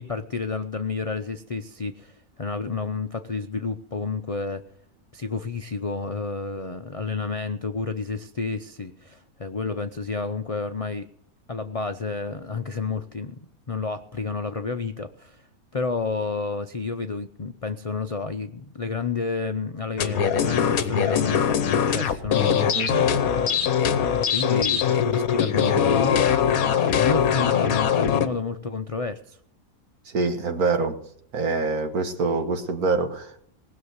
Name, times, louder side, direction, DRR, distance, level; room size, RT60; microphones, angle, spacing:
voice 1, 0.0-4.6 5.1-11.1 11.5-13.4 13.7-15.4 15.7-22.8 23.1-26.6 26.9-29.4, left 4 dB, 55° left, 0.4 m, -30 dB
sound 1, 20.0-28.3, left 8 dB, 70° left, 1.4 m, -22 dB
voice 2, 22.7-23.1 30.1-31.0 31.3-33.5, right 3 dB, 75° right, 2.0 m, -25 dB
19.0 x 6.8 x 8.1 m
omnidirectional pair, 1.6 m